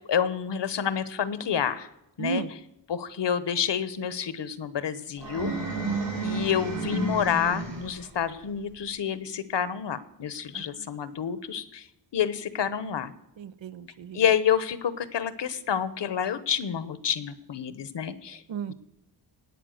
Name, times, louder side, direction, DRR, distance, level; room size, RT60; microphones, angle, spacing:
voice 1, 0.1-1.9 2.2-2.4 2.9-5.5 6.2-11.9 12.1-13.1 14.1-18.4 18.7-18.8, left 8 dB, 70° left, 14 dB, 1.1 m, -28 dB
voice 2, 2.2-2.5 5.9-6.2 10.5-10.9 13.4-14.2 18.5-18.7, right 5 dB, 85° right, 13 dB, 0.9 m, -35 dB
sound 1, 5.2-8.1, right 2 dB, 65° right, 5.0 m, -31 dB
18.5 x 8.8 x 6.6 m, 0.86 s
wide cardioid pair, 110°, 44 cm